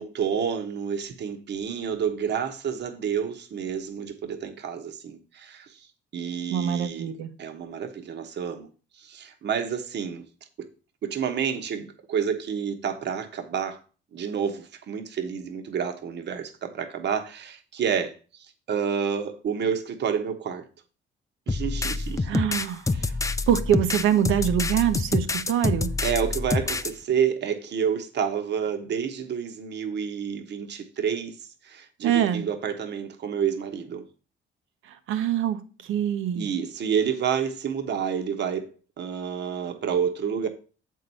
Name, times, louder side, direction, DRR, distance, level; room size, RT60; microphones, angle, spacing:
voice 1, 0.0-5.9 6.1-7.1 7.4-8.7 9.0-10.2 10.6-10.7 11.0-13.8 14.1-18.1 18.7-20.6 21.5-22.4 22.9-23.2 26.0-31.4 31.6-34.1 36.4-38.7 39.0-40.5, right 7 dB, 60° right, 1.1 m, -29 dB
voice 2, 6.5-7.3 22.2-22.9 23.5-25.9 32.0-32.5 34.9-36.6, right 10 dB, 85° right, 0.9 m, -24 dB
sound 1, 21.5-26.9, left 3 dB, 15° left, 0.5 m, -27 dB
7.4 x 4.7 x 5.4 m
cardioid pair, 90°, 20 cm